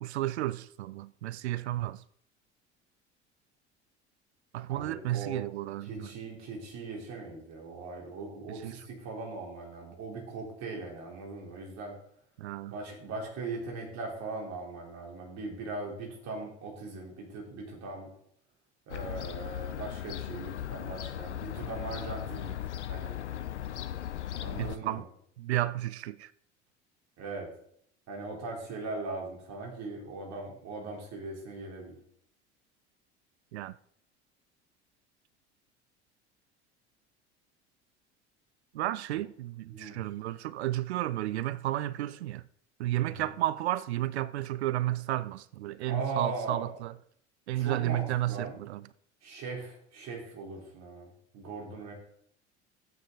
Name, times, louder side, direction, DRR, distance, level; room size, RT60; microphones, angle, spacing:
voice 1, 0.0-2.0 4.5-6.1 8.5-8.7 12.4-12.7 24.6-25.0 25.4-26.3 33.5-33.7 38.7-42.4 42.8-46.9 47.5-48.8, right 14 dB, 70° right, 0.5 m, -32 dB
voice 2, 4.7-5.4 5.8-11.9 12.7-18.1 18.9-22.6 22.9-23.2 24.4-25.0 27.2-27.5 28.1-32.0 39.1-39.2 39.7-40.0 43.0-43.3 45.9-46.7 47.5-48.6 49.2-51.9, right 3 dB, 50° right, 4.2 m, -39 dB
Fowl / Gull seagull, 18.9-24.8, left 11 dB, 80° left, 0.6 m, -37 dB
13.5 x 9.2 x 4.0 m
figure-of-eight pair, 65°, 34 cm